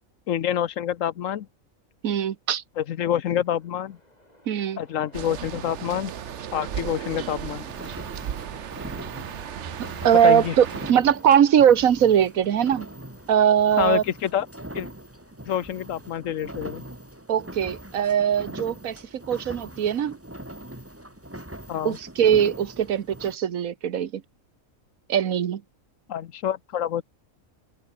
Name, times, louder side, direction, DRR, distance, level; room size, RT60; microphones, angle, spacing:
voice 1, 0.3-1.5 2.8-4.0 4.8-6.1 6.5-7.7 10.2-10.5 13.8-14.5 14.7-14.9 15.4-16.8 21.7-22.0 26.1-27.0, left 10 dB, 70° left, 1.2 m, -27 dB
voice 2, 2.0-2.6 4.5-4.8 10.0-12.9 13.3-14.0 17.3-19.0 19.3-20.2 21.8-24.2 25.1-25.6, right 9 dB, 85° right, 1.5 m, -21 dB
Train, 3.0-20.1, left 1 dB, 30° left, 7.2 m, -54 dB
sound 1, 5.1-10.9, right 10 dB, 60° right, 1.1 m, -35 dB
sound 2, 7.4-23.4, right 1 dB, 10° right, 2.8 m, -41 dB
omnidirectional pair, 1.4 m